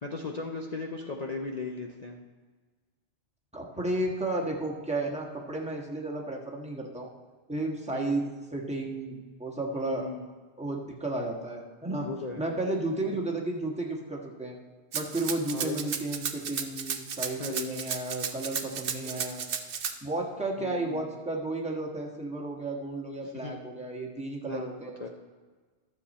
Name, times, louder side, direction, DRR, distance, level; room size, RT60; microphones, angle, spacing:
voice 1, 0.0-2.2 7.9-8.2 9.8-10.3 12.0-12.4 13.1-13.2 15.5-15.9 17.4-17.8 18.9-19.3 20.6-21.0 23.4-23.5 24.5-24.7 25.0-25.1, left 3 dB, 40° left, 1 dB, 0.7 m, -37 dB
voice 2, 3.5-7.1 7.5-10.1 10.6-12.1 12.4-14.6 14.9-19.4 20.0-25.1, right 2 dB, 5° right, -2 dB, 1.4 m, -33 dB
Rattle (instrument), 14.9-19.9, right 7 dB, 55° right, 0.8 m, -33 dB
12.0 x 7.2 x 4.2 m, 1.4 s
omnidirectional pair, 1.3 m